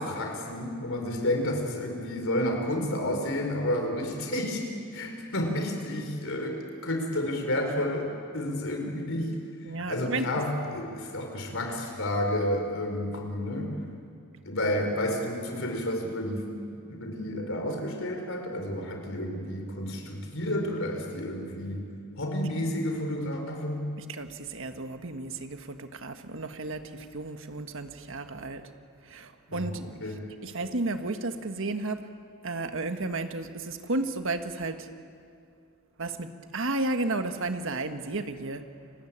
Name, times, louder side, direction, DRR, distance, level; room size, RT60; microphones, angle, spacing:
voice 1, 0.0-4.6 4.9-9.4 9.8-13.7 14.4-16.5 16.9-21.8 22.2-23.9 29.5-30.2, left 1 dB, 60° left, 3 dB, 5.0 m, -31 dB
voice 2, 9.6-10.3 24.1-28.6 29.1-29.8 30.4-32.1 32.4-34.9 36.0-38.6, right 2 dB, 60° right, 7 dB, 1.6 m, -33 dB
29.5 x 20.5 x 8.8 m, 2.4 s
head